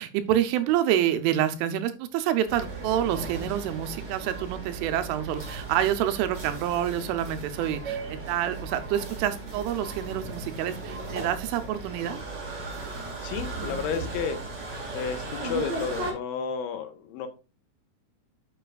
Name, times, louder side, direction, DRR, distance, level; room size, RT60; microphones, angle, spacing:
voice 1, 0.0-12.2, right 11 dB, 85° right, 3.3 m, -27 dB
sound 1, 2.5-16.1, right 3 dB, 60° right, 1.1 m, -36 dB
voice 2, 13.2-14.4 14.9-17.3, left 6 dB, 80° left, 3.3 m, -32 dB
9.2 x 6.7 x 2.4 m
omnidirectional pair, 5.6 m